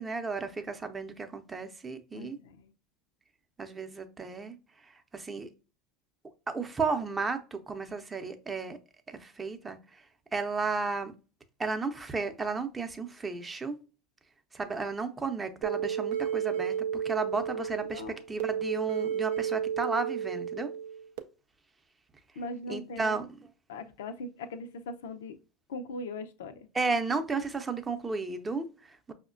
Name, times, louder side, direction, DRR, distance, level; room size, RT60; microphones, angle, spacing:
voice 1, 0.0-2.4 3.6-4.6 4.8-5.5 6.5-8.8 9.1-10.0 10.3-11.1 11.6-13.8 14.5-20.7 22.7-23.5 26.7-29.1, right 4 dB, 20° right, 0.6 m, -33 dB
voice 2, 2.1-2.7 17.9-18.2 22.4-23.2 23.7-25.4 25.7-26.7, left 2 dB, 85° left, 0.4 m, -40 dB
sound 1, 15.6-21.2, right 8 dB, 80° right, 0.4 m, -32 dB
5.3 x 2.1 x 2.4 m
hypercardioid pair, 85°, 0 cm